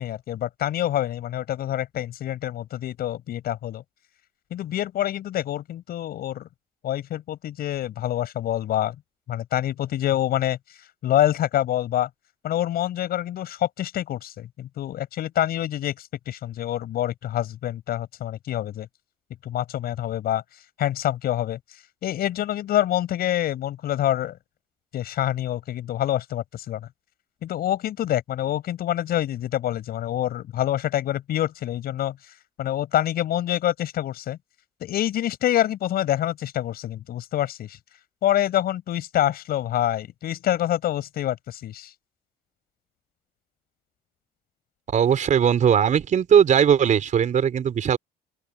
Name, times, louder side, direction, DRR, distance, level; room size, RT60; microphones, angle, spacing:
voice 1, 0.0-3.8 4.5-6.5 6.8-9.0 9.3-10.6 11.0-12.1 12.4-18.9 19.4-20.4 20.8-21.6 22.0-24.4 24.9-26.9 27.4-32.3 32.6-34.4 34.8-37.8 38.2-41.9, left 12 dB, 65° left, 7.0 m, -26 dB
voice 2, 44.9-48.0, right 8 dB, 50° right, 4.6 m, -19 dB
open air
cardioid pair, 110°, 17 cm